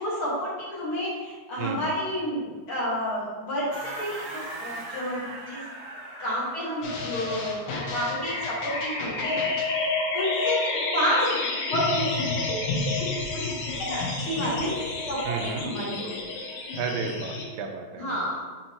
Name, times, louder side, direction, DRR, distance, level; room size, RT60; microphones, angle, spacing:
voice 1, 0.0-5.6 6.2-9.6 10.1-11.3 11.7-12.2 12.5-12.6 13.8-14.7 15.0-16.3 18.0-18.4, equal, 50° left, -7 dB, 2.1 m, -30 dB
sound 1, 3.7-8.1, right 1 dB, 55° right, 1.4 m, -39 dB
sound 2, 6.8-17.4, left 3 dB, 85° left, 2.5 m, -29 dB
voice 2, 15.3-15.7 16.8-18.2, right 6 dB, 75° right, 3 dB, 1.9 m, -33 dB
6.1 x 5.3 x 2.9 m, 1.3 s
omnidirectional pair, 3.4 m